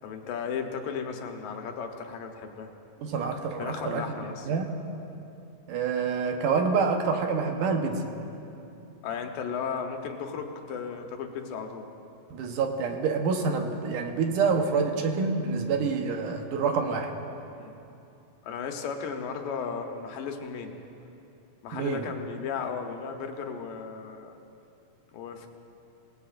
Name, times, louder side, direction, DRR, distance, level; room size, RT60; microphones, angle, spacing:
voice 1, 0.0-2.7 3.6-4.5 9.0-11.9 17.6-17.7 18.4-20.7 21.6-24.4 25.1-25.5, left 6 dB, 90° left, 4 dB, 2.7 m, -35 dB
voice 2, 3.0-4.1 4.5-4.7 5.7-8.1 12.3-17.1 21.7-22.1, right 5 dB, 75° right, 4 dB, 2.5 m, -27 dB
26.0 x 18.5 x 2.5 m, 2.8 s
omnidirectional pair, 3.8 m